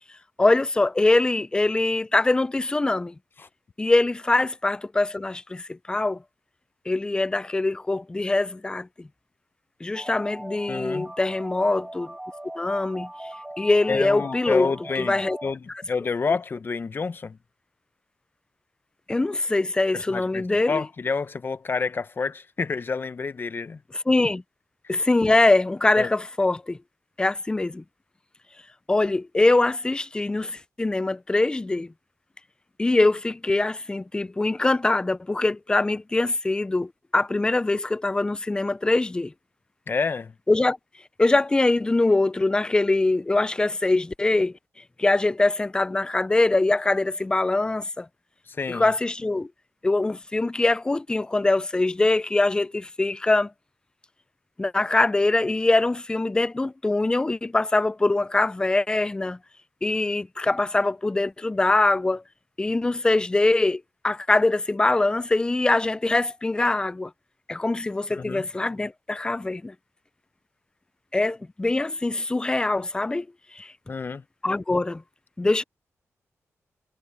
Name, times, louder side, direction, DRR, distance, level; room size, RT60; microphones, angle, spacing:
voice 1, 0.4-3.1 3.8-6.2 6.9-9.1 9.8-12.1 12.6-13.1 13.6-14.7 15.0-15.4 19.1-20.8 23.9-24.4 24.9-26.8 27.2-27.8 28.9-31.9 32.8-39.3 40.5-40.8 41.2-44.5 45.0-48.1 48.7-49.5 49.8-53.5 54.6-59.4 59.8-62.2 62.6-67.1 67.5-69.7 71.1-73.3 73.5-73.7 74.4-75.0 75.4-75.6, left 2 dB, 15° left, 0.4 m, -23 dB
sound 1, 9.9-15.5, right 1 dB, 10° right, 7.2 m, -40 dB
voice 2, 10.7-11.1 13.9-17.4 19.9-23.8 26.0-26.1 39.9-40.3 48.5-48.9 68.1-68.5 73.9-74.2, left 4 dB, 40° left, 0.9 m, -29 dB
wide cardioid pair, 115°, 5 cm